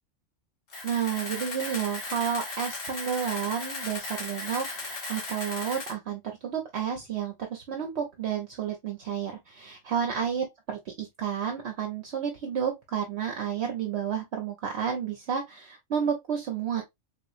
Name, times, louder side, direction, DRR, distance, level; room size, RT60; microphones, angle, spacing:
Camera, 0.7-5.9, left 3 dB, 50° left, 1.2 m, -37 dB
voice 1, 0.8-16.8, right 8 dB, 65° right, 0.9 m, -31 dB
3.5 x 2.9 x 2.4 m
omnidirectional pair, 1.3 m